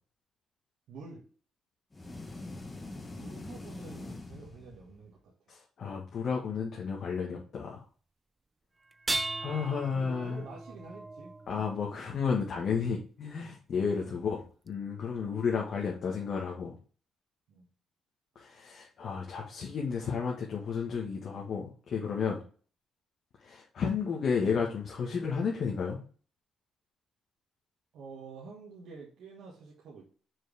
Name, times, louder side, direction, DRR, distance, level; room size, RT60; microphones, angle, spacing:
voice 1, 0.9-1.2 3.1-5.3 9.9-11.7 13.4-13.6 14.0-14.3 15.2-15.4 17.5-17.7 27.9-30.0, right 4 dB, 80° right, -4 dB, 1.8 m, -48 dB
sound 1, 1.9-5.1, left 2 dB, 20° left, 1.2 m, -43 dB
voice 2, 5.5-7.8 9.4-10.5 11.5-16.7 18.3-22.4 23.4-26.0, left 6 dB, 60° left, -1 dB, 1.5 m, -32 dB
sound 2, 8.9-12.2 13.7-13.8 14.7-14.8, right 2 dB, 20° right, 0.4 m, -37 dB
6.0 x 4.8 x 3.4 m, 0.41 s
cardioid pair, 90°, 0 cm